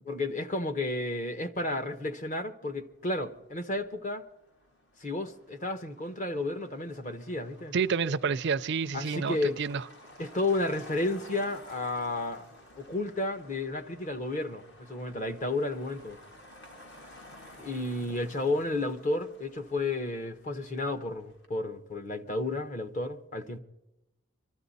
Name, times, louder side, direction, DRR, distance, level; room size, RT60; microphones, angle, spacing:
voice 1, 0.1-4.2 5.0-7.7 8.9-9.6 10.2-12.4 12.8-16.2 17.6-23.6, left 2 dB, 35° left, 0.9 m, -32 dB
Motor vehicle (road), 2.7-21.5, left 1 dB, 55° left, 1.7 m, -54 dB
voice 2, 7.7-9.8, right 5 dB, 55° right, 0.4 m, -29 dB
24.0 x 13.0 x 4.1 m
head